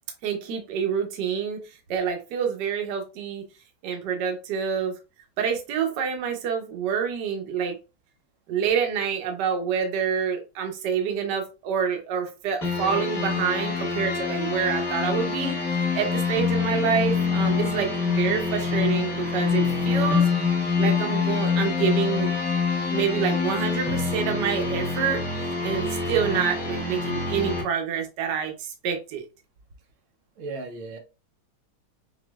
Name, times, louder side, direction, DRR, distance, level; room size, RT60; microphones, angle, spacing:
voice 1, 0.2-1.6 1.9-3.4 3.8-4.9 5.4-7.8 8.5-15.5 15.9-20.3 20.8-22.3 22.9-25.2 25.6-29.3, right 7 dB, 65° right, 1.3 m, -27 dB
sound 1, 12.6-27.6, left 5 dB, 45° left, 2.3 m, -25 dB
voice 2, 30.4-31.0, right 3 dB, 80° right, 1.5 m, -35 dB
6.0 x 2.6 x 2.3 m
omnidirectional pair, 2.2 m